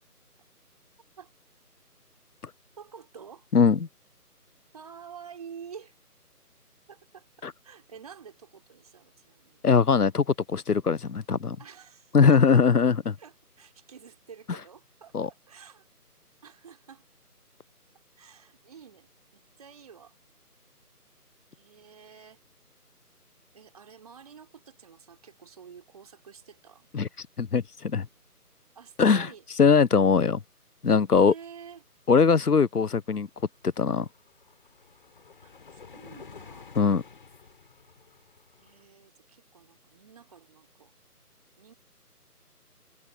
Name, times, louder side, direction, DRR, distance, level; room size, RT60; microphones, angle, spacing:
voice 1, 2.8-3.5 4.7-5.9 6.9-7.3 7.6-9.7 11.6-12.6 13.2-15.8 16.4-17.1 18.2-20.2 21.5-22.4 23.5-26.9 28.8-29.4 31.1-31.9 35.4-36.7 38.6-40.9 41.6-41.7, right 7 dB, 25° right, 3.5 m, -49 dB
voice 2, 9.6-11.6 12.1-13.0 15.1-15.3 26.9-27.1 27.4-28.1 29.0-29.3 29.6-30.4 30.8-31.3 32.1-33.3 33.8-34.1 36.8-37.0, left 5 dB, 70° left, 1.0 m, -21 dB
sound 1, 33.1-38.9, left 5 dB, 35° left, 5.7 m, -51 dB
figure-of-eight pair, 165°, 47 cm